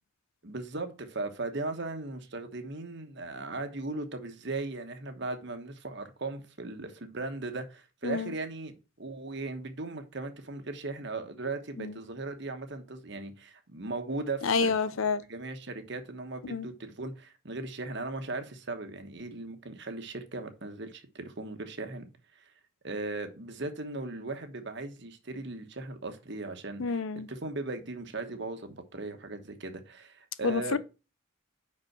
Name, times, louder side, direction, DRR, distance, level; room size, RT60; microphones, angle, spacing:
voice 1, 0.4-15.0 15.3-22.1 22.4-22.5 22.8-27.0 27.3-30.8, right 3 dB, 55° right, 1.2 m, -38 dB
voice 2, 14.4-15.2 16.4-16.7 26.8-27.3 30.4-30.8, left 4 dB, 75° left, 0.6 m, -28 dB
5.5 x 5.4 x 5.9 m
head